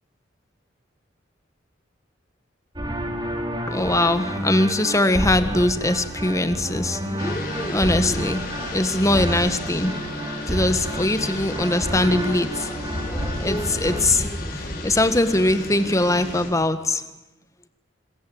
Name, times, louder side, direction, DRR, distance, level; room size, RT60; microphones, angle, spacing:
sound 1, 2.8-14.1, equal, 25° right, 4.2 m, -30 dB
voice 1, 3.7-17.0, left 1 dB, 15° left, 10 dB, 1.6 m, -22 dB
sound 2, 7.2-16.5, left 1 dB, 50° left, 5.6 m, -33 dB
26.0 x 22.0 x 8.9 m, 0.99 s
head